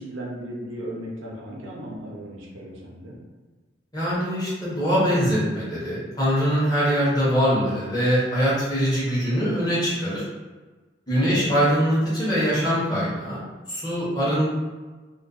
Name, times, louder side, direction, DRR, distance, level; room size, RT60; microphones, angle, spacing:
voice 1, 0.0-3.2 11.1-11.5, right 1 dB, 85° right, -3 dB, 0.6 m, -36 dB
voice 2, 3.9-10.2 11.1-13.4 13.7-14.5, equal, 20° left, -9 dB, 0.8 m, -22 dB
2.4 x 2.1 x 2.3 m, 1.3 s
head